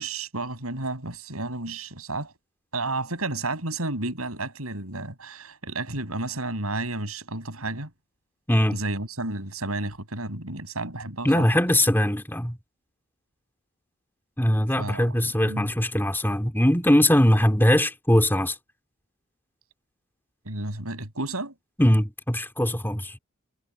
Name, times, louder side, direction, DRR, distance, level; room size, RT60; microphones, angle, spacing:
voice 1, 0.0-2.3 2.7-7.9 8.7-11.5 14.8-15.2 15.4-15.7 20.4-21.5, right 2 dB, 85° right, 7.1 m, -32 dB
voice 2, 8.5-8.8 11.2-12.6 14.4-18.6 21.8-23.2, left 1 dB, 10° left, 2.6 m, -21 dB
head